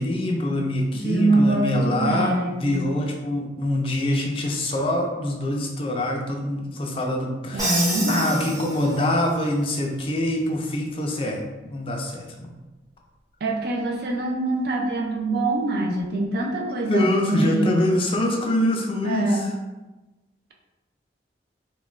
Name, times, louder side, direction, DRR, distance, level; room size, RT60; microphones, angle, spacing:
voice 1, 0.0-7.8 8.1-12.2 16.9-19.5, left 1 dB, 30° left, 1 dB, 0.4 m, -24 dB
voice 2, 1.0-2.9 7.5-8.4 13.4-17.8 19.0-19.5, right 2 dB, 60° right, 1 dB, 0.4 m, -24 dB
Crash cymbal, 7.6-9.3, right 1 dB, 20° right, 0.7 m, -28 dB
2.4 x 2.1 x 3.1 m, 1.1 s
head